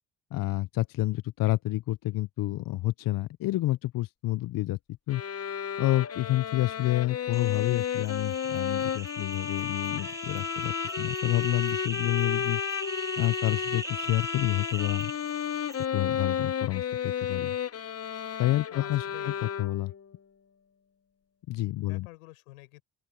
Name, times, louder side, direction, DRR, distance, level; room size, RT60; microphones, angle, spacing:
voice 1, 0.3-4.8 5.1-5.2 5.8-12.6 13.2-15.1 15.9-17.6 18.4-19.9 21.5-22.1, left 17 dB, 55° left, 0.7 m, -29 dB
sound 1, 5.1-20.0, left 8 dB, 35° left, 1.2 m, -33 dB
sound 2, 7.3-15.9, right 1 dB, 5° right, 1.4 m, -39 dB
voice 2, 18.7-19.5 21.9-22.8, left 23 dB, 85° left, 7.5 m, -48 dB
open air
hypercardioid pair, 65°, 42 cm